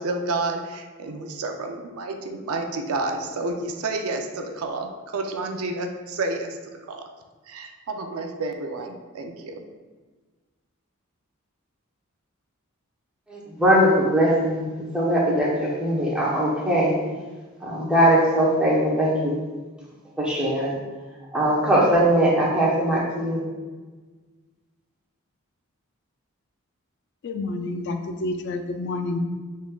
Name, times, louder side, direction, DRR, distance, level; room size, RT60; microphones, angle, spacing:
voice 1, 0.0-6.6 6.9-7.0 7.5-9.6, right 2 dB, 75° right, 4 dB, 0.5 m, -30 dB
voice 2, 13.3-17.0 17.6-19.3 20.2-20.8 21.3-23.4, right 1 dB, 5° right, -6 dB, 1.0 m, -21 dB
voice 3, 27.2-29.2, left 2 dB, 55° left, 6 dB, 0.4 m, -29 dB
6.2 x 3.5 x 2.3 m, 1.3 s
head